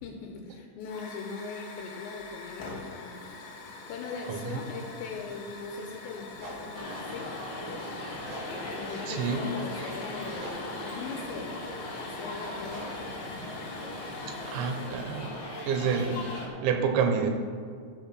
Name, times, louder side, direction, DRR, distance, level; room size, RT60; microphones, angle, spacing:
voice 1, 0.0-3.2 3.9-7.3 8.7-11.6 11.9-13.2, left 4 dB, 80° left, 2 dB, 3.1 m, -40 dB
Hiss / Fire, 0.8-15.3, left 3 dB, 65° left, 2.4 m, -45 dB
voice 2, 4.3-4.6 9.1-9.4 14.5-15.3 15.7-17.3, right 6 dB, 85° right, 4 dB, 3.4 m, -28 dB
sound 1, 5.7-5.8 6.3-15.1, right 2 dB, 70° right, 4.6 m, -48 dB
sound 2, 6.7-16.5, left 1 dB, 45° left, 2.5 m, -38 dB
13.0 x 6.2 x 6.1 m, 2.2 s
omnidirectional pair, 5.3 m